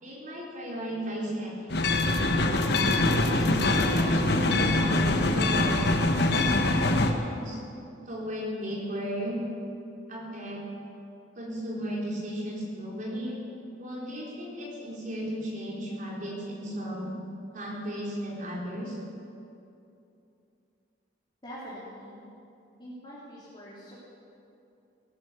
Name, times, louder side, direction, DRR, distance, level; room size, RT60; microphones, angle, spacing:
voice 1, 0.0-2.7 3.3-6.3 6.7-7.6 8.1-9.4 10.1-10.6 11.3-13.4 13.8-17.1 17.5-19.0, equal, 45° right, -4 dB, 4.1 m, -35 dB
sound 1, 1.7-7.1, left 2 dB, 60° left, 1.2 m, -24 dB
voice 2, 21.4-22.2 22.8-23.9, equal, 25° left, -9 dB, 3.3 m, -43 dB
18.5 x 11.5 x 6.9 m, 2.7 s
head